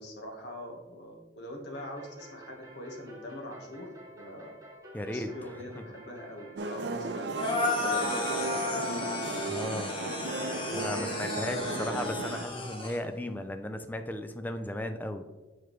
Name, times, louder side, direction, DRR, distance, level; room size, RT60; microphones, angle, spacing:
voice 1, 0.0-4.5 5.0-7.3 7.6-8.9 10.2-12.3, left 1 dB, 75° left, 1 dB, 1.3 m, -43 dB
sound 1, 1.7-8.8, equal, 20° right, 1.2 m, -50 dB
voice 2, 4.9-5.3 9.4-9.9 10.7-15.2, left 1 dB, 10° left, 8 dB, 0.4 m, -35 dB
sound 2, 6.5-12.5, right 3 dB, 70° right, 0.5 m, -35 dB
sound 3, 7.4-13.0, left 2 dB, 30° left, 1.0 m, -33 dB
6.9 x 4.7 x 3.1 m, 1.2 s
head